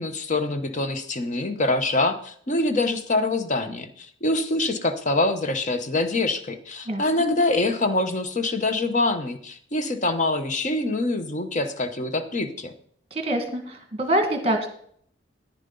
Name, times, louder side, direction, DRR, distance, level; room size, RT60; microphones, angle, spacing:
voice 1, 0.0-12.7, left 2 dB, 40° left, 8 dB, 0.9 m, -25 dB
voice 2, 13.1-14.7, right 1 dB, 35° right, 6 dB, 1.6 m, -25 dB
10.5 x 9.9 x 3.9 m, 0.63 s
head